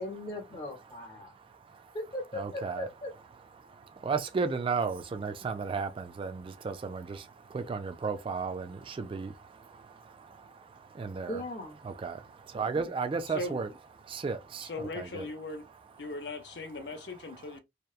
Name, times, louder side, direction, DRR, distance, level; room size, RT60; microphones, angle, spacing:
voice 1, 0.0-1.4 1.9-3.1 11.3-11.8, left 1 dB, 30° left, 0.6 m, -38 dB
voice 2, 1.2-2.0 2.3-2.9 3.6-11.4 11.8-13.7 14.0-15.3 16.7-17.6, right 5 dB, 30° right, 0.3 m, -35 dB
voice 3, 14.7-15.7 16.0-17.6, left 2 dB, 70° left, 0.6 m, -38 dB
2.8 x 2.2 x 2.3 m
head